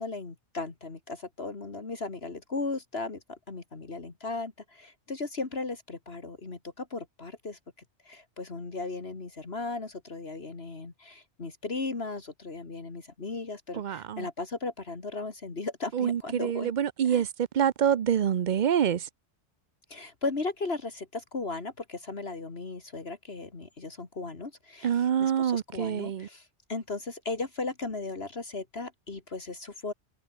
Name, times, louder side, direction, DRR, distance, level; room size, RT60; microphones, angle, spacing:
voice 1, 0.0-7.6 8.0-16.7 17.0-17.2 19.9-29.9, left 3 dB, 60° left, 2.5 m, -36 dB
voice 2, 13.7-14.3 15.9-17.3 17.5-19.1 24.8-26.3, right 9 dB, 50° right, 0.6 m, -26 dB
omnidirectional pair, 1.2 m